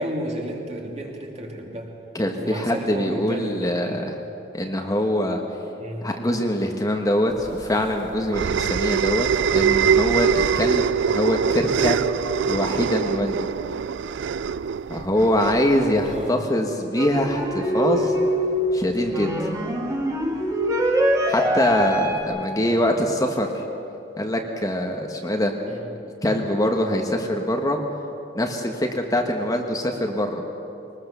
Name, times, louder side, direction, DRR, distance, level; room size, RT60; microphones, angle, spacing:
voice 1, 0.0-1.9 2.3-4.0 5.8-6.1 16.1-16.4 22.5-22.9 25.7-25.9, right 1 dB, 40° right, 0 dB, 3.0 m, -33 dB
voice 2, 2.1-4.1 4.5-5.4 6.0-12.0 12.5-13.4 14.9-18.1 18.7-19.3 21.3-23.5 24.2-25.5 26.2-27.8 28.3-30.4, left 1 dB, 20° left, 2 dB, 1.3 m, -23 dB
sound 1, 7.4-16.3, right 7 dB, 70° right, 0.4 m, -23 dB
sound 2, 17.0-22.2, equal, 20° right, 2.2 m, -24 dB
23.0 x 19.5 x 6.9 m, 2.9 s
head